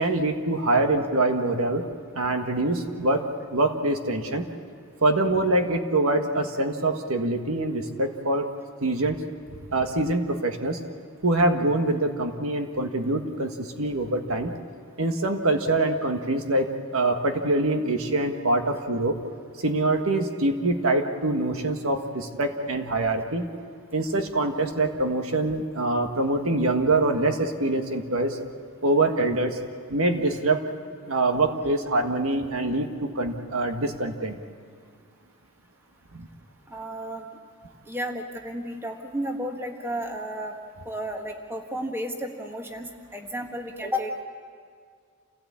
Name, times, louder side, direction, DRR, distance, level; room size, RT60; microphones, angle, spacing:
voice 1, 0.0-1.8 2.1-4.5 5.0-8.5 8.8-9.2 9.5-10.8 11.2-14.5 15.0-19.1 19.6-23.5 23.9-28.4 28.8-29.6 29.9-30.6 31.1-34.4 36.2-36.3, right 2 dB, 65° right, 5 dB, 1.6 m, -24 dB
voice 2, 36.7-37.2 37.8-40.5 40.8-44.2, equal, 10° right, 3 dB, 1.6 m, -32 dB
28.5 x 16.5 x 8.6 m, 2.1 s
head